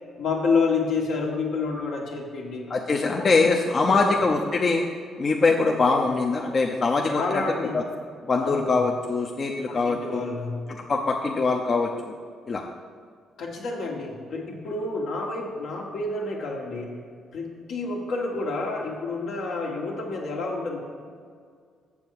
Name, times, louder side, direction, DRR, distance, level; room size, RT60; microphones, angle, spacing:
voice 1, 0.2-2.7 3.0-3.3 3.8-4.2 7.0-7.8 8.4-8.8 9.7-10.7 13.4-17.0 17.3-20.8, left 3 dB, 75° left, -1 dB, 1.5 m, -29 dB
voice 2, 2.7-4.8 5.2-7.4 7.7-7.8 8.3-10.2 10.9-12.1 12.5-12.6, left 3 dB, 40° left, 1 dB, 0.6 m, -23 dB
7.0 x 6.8 x 4.7 m, 2.1 s
cardioid pair, 90°, 0 cm